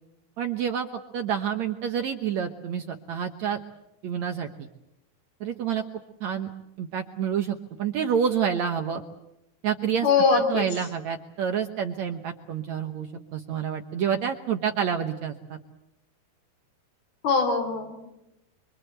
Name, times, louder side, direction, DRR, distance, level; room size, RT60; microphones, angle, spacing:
voice 1, 0.4-3.6 4.0-4.5 5.4-5.8 6.2-6.5 6.8-9.0 9.6-10.1 10.3-15.6, right 8 dB, 70° right, 5 dB, 1.7 m, -28 dB
voice 2, 10.0-10.7 17.2-18.0, left 4 dB, 70° left, 6 dB, 4.9 m, -22 dB
25.0 x 24.5 x 8.0 m, 0.87 s
omnidirectional pair, 4.7 m